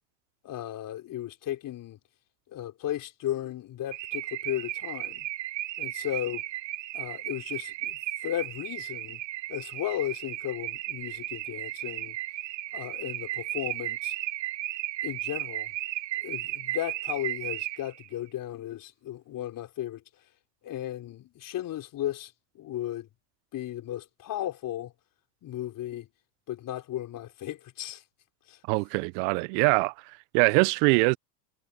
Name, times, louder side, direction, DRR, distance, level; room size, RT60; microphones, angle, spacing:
voice 1, 0.4-2.0 2.5-5.3 5.8-6.4 6.9-9.2 9.5-12.2 12.7-14.1 15.0-15.7 16.2-20.0 20.6-23.1 23.5-24.9 25.4-26.1 26.5-28.0 28.5-28.6, left 12 dB, 40° left, 4.0 m, -35 dB
Car / Alarm, 3.9-18.1, right 15 dB, 80° right, 1.6 m, -35 dB
voice 2, 28.7-29.9 30.3-31.2, right 32 dB, 50° right, 0.6 m, -23 dB
hypercardioid pair, 100°, 50 cm